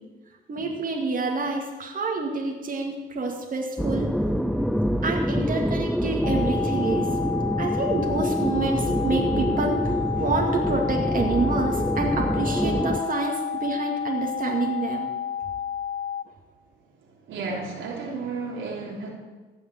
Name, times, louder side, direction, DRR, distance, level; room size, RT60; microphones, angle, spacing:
voice 1, 0.5-4.3 5.0-7.1 7.6-15.1, right 3 dB, 45° right, 0 dB, 2.3 m, -28 dB
sound 1, 3.8-13.0, equal, ahead, 0.6 m, -26 dB
sound 2, 6.2-16.2, left 9 dB, 45° left, 0.5 m, -31 dB
voice 2, 17.0-19.1, right 4 dB, 85° right, -1 dB, 3.3 m, -33 dB
16.0 x 5.7 x 9.4 m, 1.3 s
cardioid pair, 90°, 20 cm